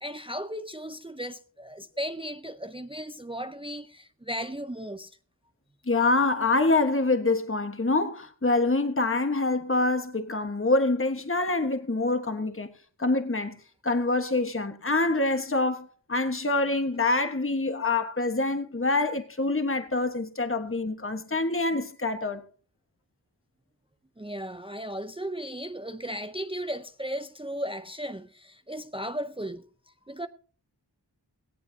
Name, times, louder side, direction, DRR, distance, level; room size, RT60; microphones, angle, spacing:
voice 1, 0.0-5.2 24.2-29.6 30.1-30.3, equal, 15° right, 0.6 m, -36 dB
voice 2, 5.9-12.7 13.0-13.5 13.8-22.4, left 2 dB, 30° left, 1.3 m, -26 dB
17.5 x 16.5 x 2.8 m
wide cardioid pair, 50°, 42 cm